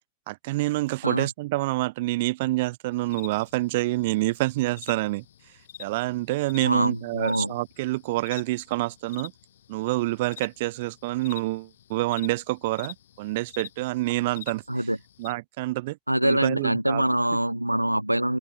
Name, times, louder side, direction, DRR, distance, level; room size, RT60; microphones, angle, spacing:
voice 1, 0.3-5.2 5.8-9.3 9.7-14.6 15.2-16.0 16.2-17.0, right 19 dB, 50° right, 0.7 m, -27 dB
sound 1, 2.9-15.3, left 11 dB, 60° left, 2.3 m, -48 dB
voice 2, 6.6-7.5 14.7-15.0 16.1-18.4, right 1 dB, 90° right, 0.7 m, -24 dB
figure-of-eight pair, 90°, 0 cm